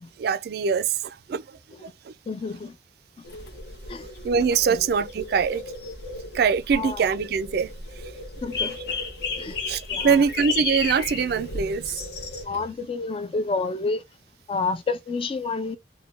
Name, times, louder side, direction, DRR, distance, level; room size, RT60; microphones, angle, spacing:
voice 1, 0.2-2.1 4.2-5.6 6.3-7.7 8.0-8.1 9.7-12.0, right 6 dB, 60° right, 0.3 m, -23 dB
voice 2, 2.3-2.8 3.2-3.3 3.9-4.1 4.6-4.8 6.7-7.0 8.4-8.8 9.4-9.6 9.9-10.2 12.4-14.0 14.5-15.8, left 3 dB, 30° left, 0.3 m, -29 dB
sound 1, 3.2-12.4, left 4 dB, 65° left, 0.9 m, -34 dB
4.0 x 2.1 x 3.3 m
head